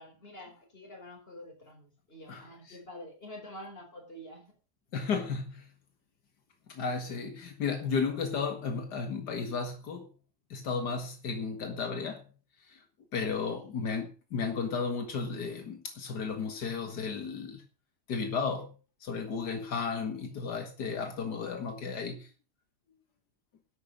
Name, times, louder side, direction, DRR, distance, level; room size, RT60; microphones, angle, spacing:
voice 1, 0.0-4.6 13.2-13.8, equal, 35° left, 4.8 m, -47 dB
voice 2, 4.9-5.7 6.7-10.1 10.5-12.2 12.7-12.8 13.1-17.6 18.1-18.7 19.0-22.3, left 5 dB, 85° left, 2.2 m, -34 dB
11.5 x 8.4 x 6.6 m
omnidirectional pair, 1.7 m